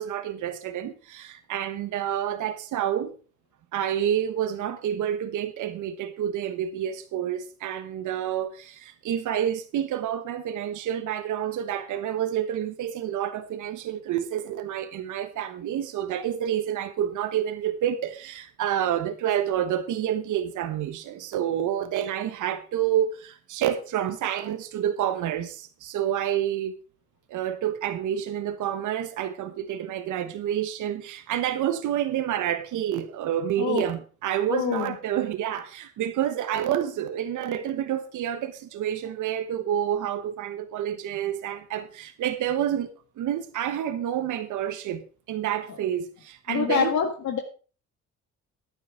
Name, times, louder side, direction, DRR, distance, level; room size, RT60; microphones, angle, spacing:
voice 1, 0.0-3.1 3.7-26.7 27.3-42.9 43.2-45.0 45.3-47.0, right 10 dB, 80° right, 1.3 m, -28 dB
voice 2, 34.5-34.9 46.5-47.4, left 7 dB, 70° left, 1.7 m, -25 dB
11.0 x 9.8 x 4.8 m
cardioid pair, 90°, 30 cm